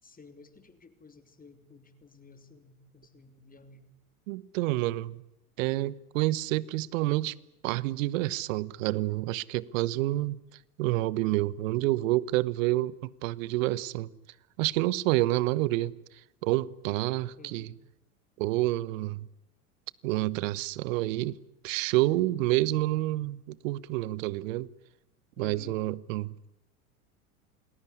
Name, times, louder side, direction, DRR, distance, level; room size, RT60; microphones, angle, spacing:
voice 1, 0.0-3.8 9.9-10.3 17.3-17.7 25.4-25.8, left 4 dB, 20° left, 3.2 m, -52 dB
voice 2, 4.3-5.2 5.6-7.3 7.6-10.4 10.8-14.1 14.6-16.0 16.4-17.7 18.4-19.3 20.0-21.4 21.6-24.7 25.4-26.5, right 17 dB, 60° right, 1.1 m, -28 dB
28.5 x 20.0 x 9.8 m
hypercardioid pair, 80°, 44 cm